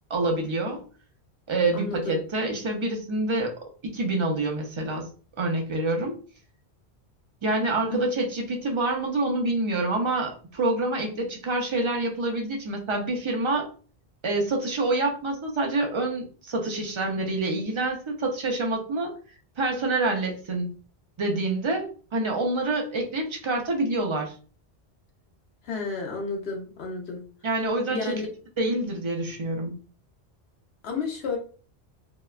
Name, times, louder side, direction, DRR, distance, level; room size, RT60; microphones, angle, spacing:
voice 1, 0.1-0.8 1.5-3.5 3.8-5.1 5.4-6.2 7.4-13.7 14.2-19.1 19.6-20.7 21.2-24.3 27.4-28.1 28.6-29.7, right 2 dB, 40° right, 2 dB, 0.4 m, -27 dB
voice 2, 1.7-2.2 7.9-8.1 25.6-27.2 27.9-28.3 30.8-31.4, left 4 dB, 70° left, 1 dB, 1.0 m, -31 dB
2.8 x 2.1 x 2.3 m, 0.39 s
omnidirectional pair, 1.1 m